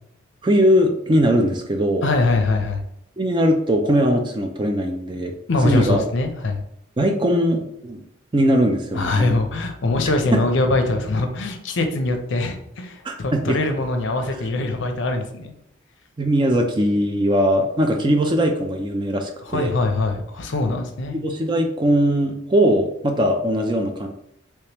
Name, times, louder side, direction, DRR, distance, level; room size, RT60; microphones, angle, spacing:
voice 1, 0.4-2.1 3.2-5.3 5.6-6.0 7.0-8.0 8.3-9.4 10.3-10.4 13.0-13.6 16.2-19.7 21.1-24.1, equal, 25° right, 4 dB, 0.4 m, -20 dB
voice 2, 2.0-2.8 5.5-6.6 8.9-15.5 19.5-21.2, left 2 dB, 60° left, 5 dB, 0.6 m, -22 dB
3.4 x 3.2 x 2.9 m, 0.74 s
head